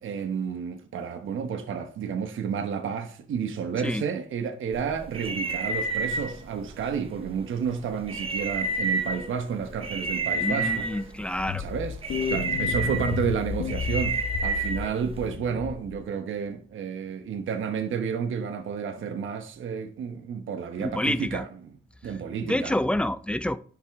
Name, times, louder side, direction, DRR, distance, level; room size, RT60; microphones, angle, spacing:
voice 1, 0.0-10.9 11.6-21.5 22.0-22.8, right 7 dB, 75° right, 1.0 m, -31 dB
sound 1, 4.7-15.4, right 2 dB, 25° right, 1.0 m, -31 dB
voice 2, 10.4-11.6 20.8-21.4 22.4-23.6, left 1 dB, 5° left, 0.5 m, -28 dB
sound 2, 11.4-16.1, left 8 dB, 75° left, 0.9 m, -32 dB
10.5 x 5.6 x 3.5 m
cardioid pair, 130°, 21 cm